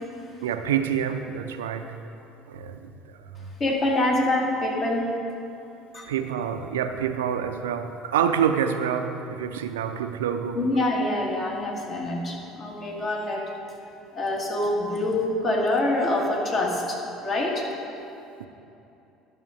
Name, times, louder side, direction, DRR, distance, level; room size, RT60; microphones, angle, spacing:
voice 1, 0.4-1.9 2.5-2.9 3.3-3.5 6.1-10.6 18.4-18.5, right 8 dB, 70° right, 8 dB, 0.5 m, -27 dB
voice 2, 3.6-5.1 5.9-6.1 10.6-13.5 14.2-17.6, left 1 dB, 35° left, -2 dB, 1.9 m, -25 dB
11.5 x 6.4 x 5.1 m, 2.8 s
figure-of-eight pair, 60°, 0 cm